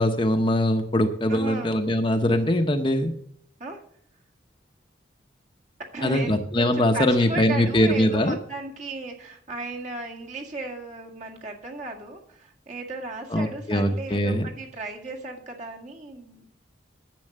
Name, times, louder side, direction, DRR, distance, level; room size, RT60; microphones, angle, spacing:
voice 1, 0.0-3.1 6.0-8.4 13.3-14.5, left 1 dB, 25° left, 6 dB, 0.9 m, -22 dB
voice 2, 1.3-1.8 3.6-3.8 5.8-16.4, right 2 dB, 40° right, 0 dB, 1.9 m, -35 dB
11.0 x 7.7 x 6.7 m, 0.65 s
head